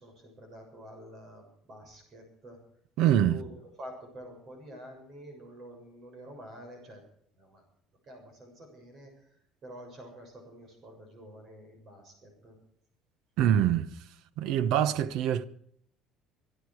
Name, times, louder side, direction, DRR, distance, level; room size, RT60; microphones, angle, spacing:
voice 1, 0.0-2.6 3.3-7.0 7.3-7.6 8.0-9.3 9.6-12.5, right 1 dB, 30° right, 6.8 m, -48 dB
voice 2, 3.0-3.4 13.4-13.9 14.4-15.5, right 10 dB, 60° right, 1.0 m, -24 dB
24.5 x 11.5 x 4.8 m
cardioid pair, 180°, 0 cm